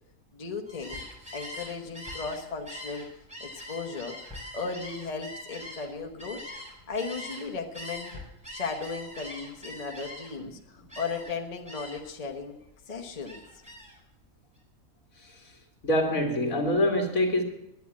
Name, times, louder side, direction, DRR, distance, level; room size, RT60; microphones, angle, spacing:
voice 1, 0.3-1.0 1.3-3.1 3.4-6.4 6.9-8.2 8.5-12.6 12.9-13.4, left 4 dB, 30° left, 1.2 m, -36 dB
Gull seagull, 0.7-7.5 7.7-10.5 10.9-11.4 11.7-12.1 12.5-14.0, left 1 dB, 5° right, 4.5 m, -42 dB
voice 2, 15.2-15.5 15.8-17.4, left 1 dB, 75° left, 2.5 m, -26 dB
10.5 x 10.0 x 8.5 m
omnidirectional pair, 1.5 m